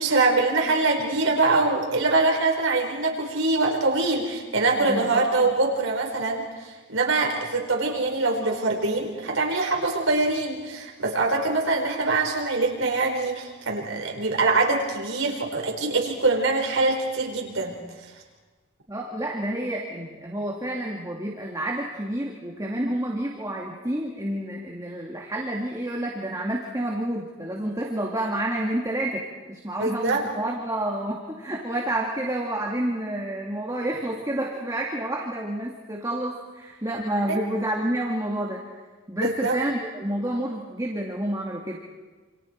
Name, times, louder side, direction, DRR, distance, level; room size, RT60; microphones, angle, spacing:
voice 1, 0.0-17.8 29.8-30.2 37.3-37.4 39.2-39.6, right 3 dB, 75° right, 0 dB, 5.0 m, -24 dB
voice 2, 4.8-5.2 18.9-38.6 39.1-41.8, right 1 dB, 15° right, -2 dB, 2.5 m, -29 dB
28.5 x 28.0 x 4.7 m, 1.4 s
head